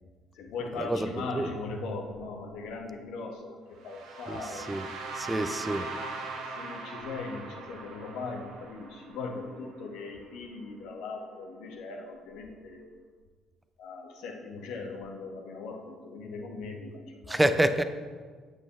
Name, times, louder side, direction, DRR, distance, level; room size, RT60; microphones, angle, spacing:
voice 1, 0.3-4.8 6.3-12.9 13.8-17.4, left 3 dB, 60° left, 2 dB, 1.0 m, -39 dB
sound 1, 3.8-9.8, right 3 dB, 65° right, 0.9 m, -40 dB
voice 2, 5.1-5.9 17.3-17.8, right 1 dB, 10° right, 10 dB, 0.5 m, -26 dB
8.8 x 8.1 x 2.3 m, 1.6 s
figure-of-eight pair, 50°, 0 cm